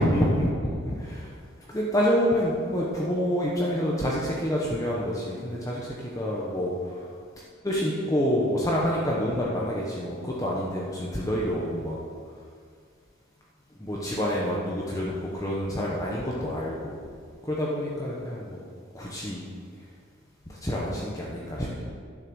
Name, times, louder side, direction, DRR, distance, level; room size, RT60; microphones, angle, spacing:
voice 1, 0.0-1.3 1.7-7.1 7.6-11.9 13.8-17.0 17.4-18.6 18.9-19.5 20.5-21.8, equal, 15° left, -5 dB, 1.1 m, -27 dB
11.0 x 6.5 x 6.4 m, 2.1 s
head